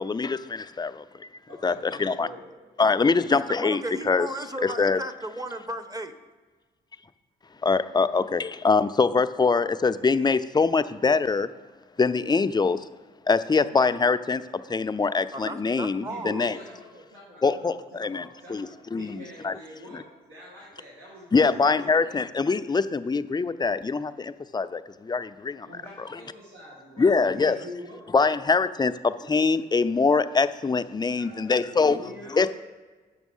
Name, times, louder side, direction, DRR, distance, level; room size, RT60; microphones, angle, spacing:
voice 1, 0.0-1.3 1.6-2.3 2.8-4.3 4.6-5.0 7.6-11.5 12.0-12.8 13.3-14.4 14.7-16.6 17.4-18.2 18.5-19.6 19.9-20.0 21.3-25.7 26.0-26.1 27.0-27.6 28.1-32.0 32.3-32.5, left 4 dB, 20° left, 12 dB, 0.4 m, -24 dB
voice 2, 1.5-2.5 16.0-22.2 25.6-28.1 31.0-32.5, left 1 dB, 75° right, -6 dB, 2.1 m, -44 dB
voice 3, 3.3-6.1 15.3-16.5, right 2 dB, 20° right, 10 dB, 0.9 m, -35 dB
7.1 x 6.1 x 5.5 m, 1.4 s
supercardioid pair, 45°, 21 cm